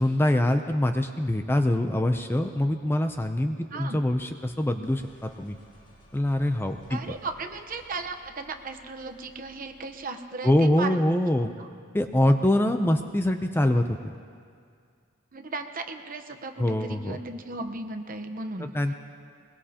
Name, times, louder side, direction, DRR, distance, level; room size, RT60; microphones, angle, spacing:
voice 1, 0.0-5.6 6.1-7.2 10.4-11.5 11.9-14.1 16.6-17.2 18.6-18.9, left 1 dB, 10° left, 6 dB, 0.5 m, -24 dB
sound 1, 2.2-10.1, right 1 dB, 40° left, 2.1 m, -58 dB
voice 2, 3.7-4.0 6.9-11.0 11.6-11.7 15.3-18.7, right 3 dB, 40° right, 6 dB, 1.0 m, -36 dB
22.0 x 21.5 x 2.9 m, 2.2 s
head